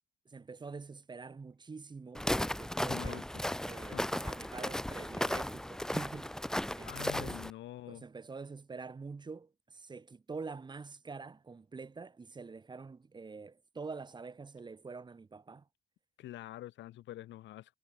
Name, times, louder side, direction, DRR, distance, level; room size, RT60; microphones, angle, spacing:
voice 1, 0.3-3.3 3.7-6.3 6.7-7.4 7.9-15.7, right 4 dB, 25° right, 2.5 m, -46 dB
Walk footsteps, 2.1-7.5, left 1 dB, 5° left, 0.9 m, -35 dB
voice 2, 2.9-3.2 3.9-4.0 6.9-8.0 16.2-17.7, left 14 dB, 80° left, 2.5 m, -45 dB
cardioid pair, 130°, 19 cm